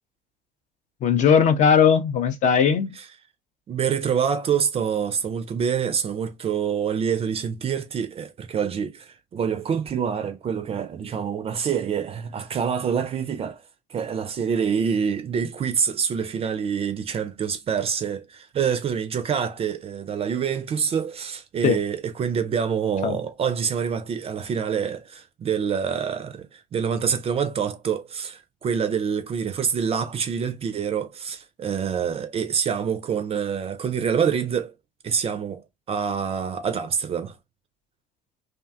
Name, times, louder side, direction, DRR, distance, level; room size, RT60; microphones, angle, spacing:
voice 1, 1.0-2.9 21.6-21.8 23.0-23.2, left 7 dB, 35° left, 0.5 m, -18 dB
voice 2, 3.7-13.6 13.9-34.7 35.0-37.4, right 7 dB, 30° right, 0.4 m, -26 dB
2.6 x 2.2 x 2.3 m
figure-of-eight pair, 60°, 21 cm